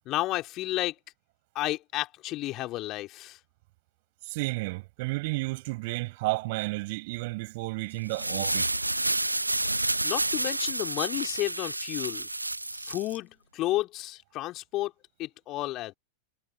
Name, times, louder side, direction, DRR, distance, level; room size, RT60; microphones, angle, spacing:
voice 1, 0.0-0.9 1.5-3.4 10.0-12.3 12.7-14.9 15.2-15.9, left 17 dB, 35° left, 3.0 m, -32 dB
voice 2, 4.3-8.7, right 23 dB, 50° right, 6.5 m, -32 dB
sound 1, 8.0-13.2, right 2 dB, 85° right, 0.8 m, -29 dB
figure-of-eight pair, 90°, 0 cm